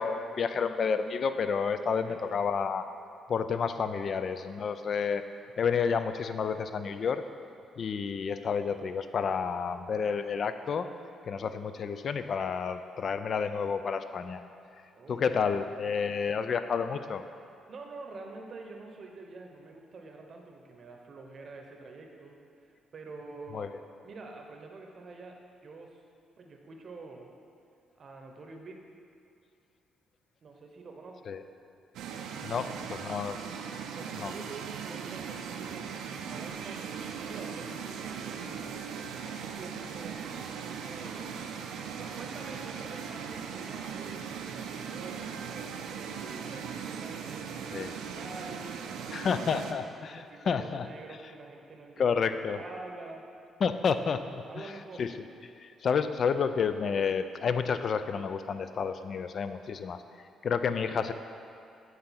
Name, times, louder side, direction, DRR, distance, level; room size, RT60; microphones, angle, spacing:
voice 1, 0.0-2.8 3.3-5.2 5.6-7.2 7.8-10.9 11.3-14.4 15.1-17.2 23.5-23.7 31.3-31.4 32.4-33.4 34.2-34.3 47.7-47.9 49.1-50.9 52.0-52.6 53.6-54.7 55.0-55.1 55.6-60.0 60.4-61.1, left 6 dB, 55° left, 10 dB, 0.4 m, -30 dB
voice 2, 14.9-16.1 17.7-23.7 24.0-26.0 26.4-27.3 28.0-28.8 30.4-31.3 32.5-33.2 33.9-36.8 37.2-41.4 41.9-49.7 50.1-53.2 54.5-55.1, right 3 dB, 50° right, 2 dB, 0.8 m, -47 dB
sound 1, 31.9-49.7, right 7 dB, 85° right, 0.5 m, -39 dB
8.0 x 3.8 x 5.7 m, 2.5 s
cardioid pair, 90°, 0 cm